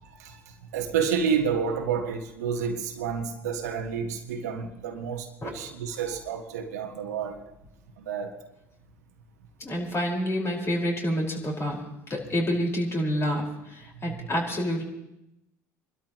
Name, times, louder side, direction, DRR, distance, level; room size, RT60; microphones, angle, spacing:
voice 1, 0.0-7.4 8.0-8.3 13.9-14.3, right 6 dB, 80° right, 1.5 m, -30 dB
voice 2, 9.6-11.8 12.1-14.8, equal, 30° left, 5.1 m, -28 dB
29.0 x 12.5 x 3.1 m
hypercardioid pair, 65°, 9 cm